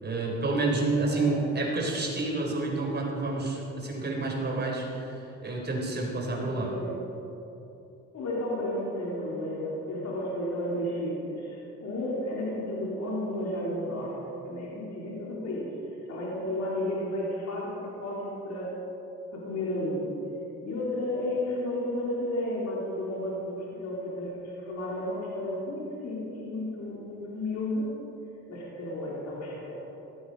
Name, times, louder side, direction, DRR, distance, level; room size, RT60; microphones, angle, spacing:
voice 1, 0.0-6.7, right 3 dB, 35° right, -1 dB, 4.1 m, -29 dB
voice 2, 1.0-1.3 6.3-6.9 8.1-14.1 14.4-15.7 16.1-18.7 19.3-20.1 20.6-27.9 28.5-29.8, left 1 dB, 65° left, -5 dB, 4.0 m, -32 dB
17.0 x 13.5 x 5.6 m, 2.9 s
cardioid pair, 90°, 30 cm